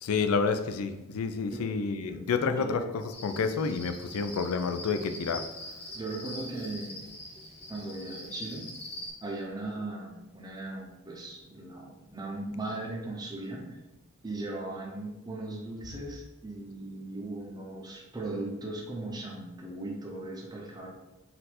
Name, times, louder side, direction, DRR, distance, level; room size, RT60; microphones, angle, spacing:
voice 1, 0.0-5.4, left 5 dB, 75° left, 8 dB, 0.4 m, -29 dB
voice 2, 2.6-2.9 5.9-7.1 7.7-8.7 9.2-13.8 14.2-20.9, right 2 dB, 20° right, -1 dB, 0.6 m, -38 dB
Cricket, 3.1-9.1, left 1 dB, 25° left, 0.8 m, -43 dB
4.3 x 2.5 x 4.2 m, 1.0 s
head